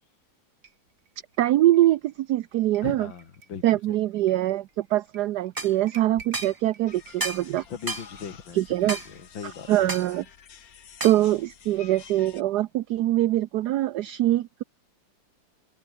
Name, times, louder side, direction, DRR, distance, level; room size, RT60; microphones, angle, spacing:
sound 1, 0.6-9.2, right 5 dB, 40° right, 2.4 m, -51 dB
voice 1, 1.4-3.1 3.6-7.6 8.5-9.0 9.4-10.2 11.0-14.6, right 14 dB, 70° right, 1.1 m, -23 dB
voice 2, 2.8-4.0 7.6-9.9, left 6 dB, 75° left, 2.8 m, -39 dB
sound 2, 5.6-5.7 6.3-6.5 7.2-7.5 7.9-8.1 8.9-9.1 9.9-10.1 11.0-11.2, right 2 dB, 15° right, 1.0 m, -31 dB
sound 3, 6.9-12.4, left 8 dB, 50° left, 1.5 m, -49 dB
omnidirectional pair, 2.1 m